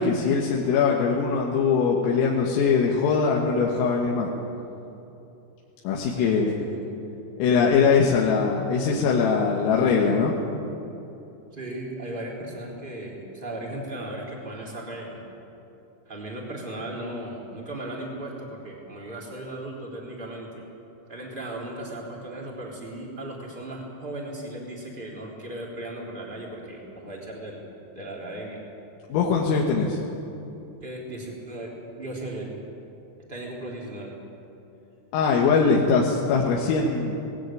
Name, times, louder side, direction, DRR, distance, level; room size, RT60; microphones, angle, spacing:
voice 1, 0.0-4.3 5.9-6.5 7.4-10.4 29.1-30.0 35.1-37.2, left 5 dB, 85° left, -2 dB, 4.2 m, -22 dB
voice 2, 6.2-6.8 11.5-15.2 16.0-20.6 21.1-27.6 27.9-28.6 30.8-32.6 33.3-34.1, right 1 dB, 10° right, -2 dB, 3.1 m, -36 dB
19.5 x 16.5 x 9.2 m, 3.0 s
omnidirectional pair, 5.8 m